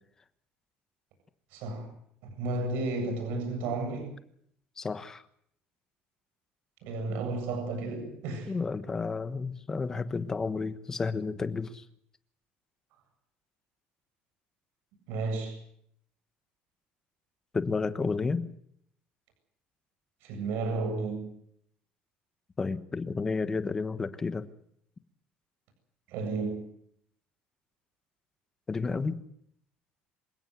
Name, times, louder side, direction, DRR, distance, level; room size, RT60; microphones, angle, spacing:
voice 1, 1.5-1.8 2.3-4.1 6.8-8.5 15.1-15.5 20.2-21.3 26.1-26.6, right 3 dB, 65° right, 5 dB, 7.9 m, -32 dB
voice 2, 4.8-5.2 8.5-11.8 17.5-18.4 22.6-24.5 28.7-29.2, left 4 dB, 15° left, 12 dB, 1.2 m, -31 dB
26.5 x 17.5 x 8.3 m, 0.68 s
cardioid pair, 180°, 4 cm